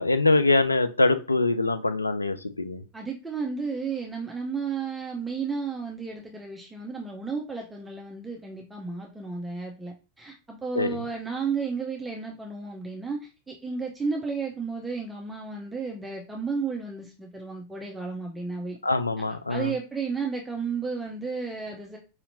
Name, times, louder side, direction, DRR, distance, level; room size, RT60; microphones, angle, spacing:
voice 1, 0.0-2.8 10.8-11.0 18.8-19.7, left 2 dB, 85° left, 0.3 m, -23 dB
voice 2, 2.9-18.8 19.5-22.0, right 5 dB, 10° right, 0.6 m, -33 dB
4.3 x 2.7 x 2.6 m
figure-of-eight pair, 90°, 0 cm